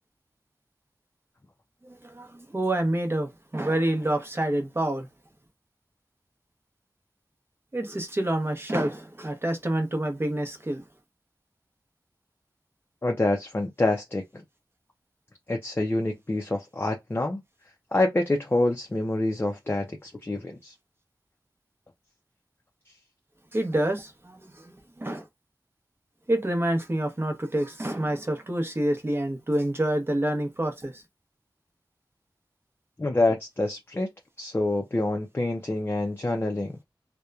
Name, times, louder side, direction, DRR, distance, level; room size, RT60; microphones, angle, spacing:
voice 1, 1.8-5.1 7.7-10.8 23.5-25.2 26.3-31.0, right 1 dB, 30° right, 0.8 m, -27 dB
voice 2, 13.0-14.4 15.5-17.4 17.9-20.7 33.0-34.1 34.4-36.8, left 2 dB, 30° left, 0.5 m, -27 dB
2.8 x 2.1 x 2.3 m
wide cardioid pair, 70°, 8 cm